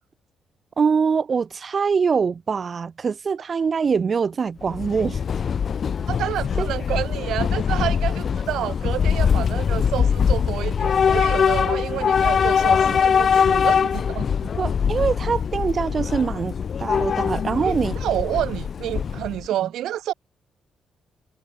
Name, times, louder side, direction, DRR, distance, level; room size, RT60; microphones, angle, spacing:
voice 1, 0.8-5.2 6.6-6.7 14.6-18.0 19.6-19.7, right 5 dB, 40° right, 3.1 m, -23 dB
Train / Subway metro underground, 4.6-19.5, left 7 dB, 50° left, 1.9 m, -22 dB
voice 2, 6.1-14.5 17.6-17.8 18.0-20.1, right 12 dB, 80° right, 0.7 m, -29 dB
cardioid pair, 90°, 0 cm